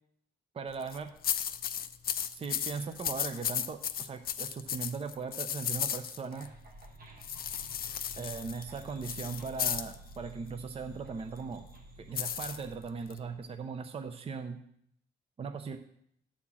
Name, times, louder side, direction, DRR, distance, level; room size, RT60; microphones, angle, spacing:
voice 1, 0.5-1.1 2.3-6.5 8.1-11.6 12.0-14.6 15.4-15.8, right 5 dB, 35° right, 7 dB, 0.6 m, -39 dB
sound 1, 0.7-1.0 1.2-6.5 7.2-9.9 12.1-13.2, left 9 dB, 55° left, 0.5 m, -35 dB
sound 2, 6.3-13.5, right 2 dB, 55° right, 1.3 m, -51 dB
11.0 x 4.3 x 7.2 m, 0.69 s
wide cardioid pair, 170°, 18 cm